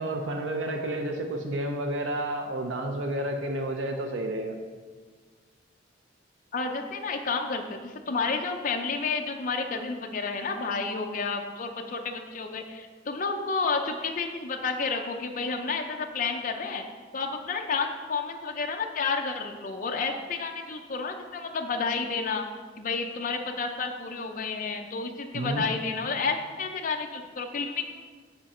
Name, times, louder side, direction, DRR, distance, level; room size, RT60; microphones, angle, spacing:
voice 1, 0.0-4.6 25.3-25.6, right 1 dB, 90° right, 4 dB, 0.6 m, -30 dB
voice 2, 6.5-16.8 17.1-22.5 22.8-27.8, left 4 dB, 45° left, 3 dB, 0.5 m, -30 dB
7.7 x 5.1 x 4.3 m, 1.5 s
head